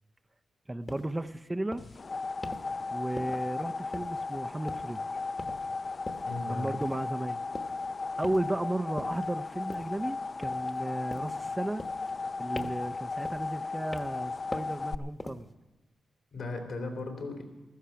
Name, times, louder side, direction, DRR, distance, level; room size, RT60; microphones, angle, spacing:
voice 1, 0.7-1.8 2.9-5.0 6.5-7.4 8.2-11.8 12.4-15.5, right 1 dB, 15° right, 9 dB, 0.6 m, -34 dB
sound 1, 0.9-1.1 1.7-2.0 2.4-2.7 3.2-3.6 3.9-4.4 4.7-5.0 5.4-5.7 6.1-6.3 6.8-7.1 7.5-7.8 8.2-8.6 9.0-9.3 9.7-10.0 10.4-10.8 11.1-11.4 11.8-12.3 12.6-12.9 13.2-13.6 13.9-14.2 14.5-14.8 15.2-15.5, left 2 dB, 25° left, 1.2 m, -42 dB
sound 2, 1.8-15.0, left 3 dB, 45° left, 0.4 m, -36 dB
voice 2, 6.2-6.7 16.3-17.4, left 2 dB, 75° left, 4 dB, 3.3 m, -37 dB
15.0 x 13.5 x 5.8 m, 1.1 s
cardioid pair, 75°, 0 cm